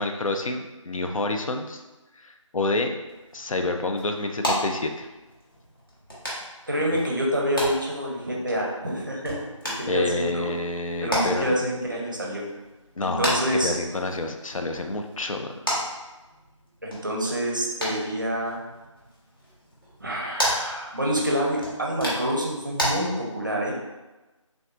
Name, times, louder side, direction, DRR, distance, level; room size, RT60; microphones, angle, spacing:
voice 1, 0.0-1.8 2.2-3.0 3.3-5.1 9.9-11.6 13.0-15.5, left 2 dB, 80° left, 5 dB, 0.4 m, -28 dB
sound 1, 3.1-22.9, equal, 40° left, 0.9 m, -34 dB
voice 2, 6.7-9.4 9.6-10.5 11.0-12.4 13.0-13.7 16.8-18.6 20.0-23.7, equal, 40° right, -2 dB, 0.5 m, -27 dB
3.4 x 2.6 x 2.3 m, 1.1 s
figure-of-eight pair, 170°, 17 cm